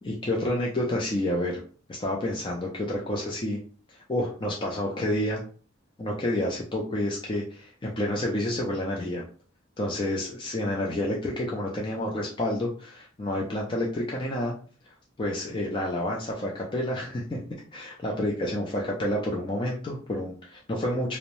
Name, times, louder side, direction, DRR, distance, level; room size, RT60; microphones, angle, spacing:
voice 1, 0.0-1.6 1.9-3.6 3.9-5.4 6.0-9.2 9.8-14.5 14.8-17.4 17.7-21.2, left 1 dB, 25° left, -2 dB, 0.4 m, -29 dB
2.6 x 2.0 x 3.0 m, 0.41 s
head